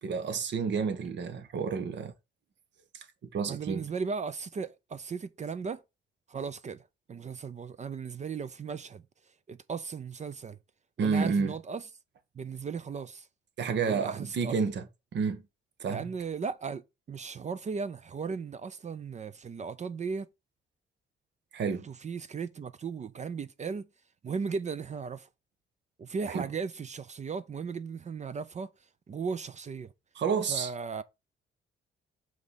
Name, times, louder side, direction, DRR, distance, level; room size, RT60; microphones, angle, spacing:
voice 1, 0.0-2.1 2.9-3.1 3.3-3.8 11.0-11.5 13.6-14.9 15.1-15.4 15.8-16.1 21.5-21.9 26.3-26.4 30.1-30.7, right 5 dB, 65° right, 1.5 m, -30 dB
voice 2, 3.5-5.8 6.3-9.0 9.5-10.6 11.0-11.8 12.3-13.3 13.9-14.5 15.9-20.3 21.8-23.9 24.2-25.3 26.0-28.7 29.1-29.9 30.5-31.0, right 5 dB, 35° right, 0.6 m, -36 dB
6.3 x 5.3 x 4.0 m
cardioid pair, 90°, 20 cm